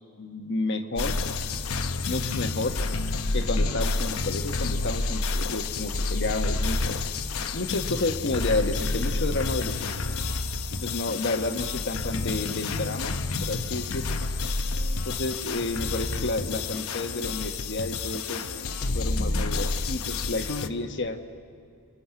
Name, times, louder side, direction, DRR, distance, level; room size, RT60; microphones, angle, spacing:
voice 1, 0.2-1.1 2.1-2.8 3.3-6.9 7.5-9.9 10.8-14.2 15.1-18.4 18.8-21.4, left 2 dB, 55° left, 6 dB, 1.2 m, -31 dB
sound 1, 1.0-20.7, left 3 dB, 70° left, 0.9 m, -29 dB
29.5 x 22.0 x 5.8 m, 2.5 s
head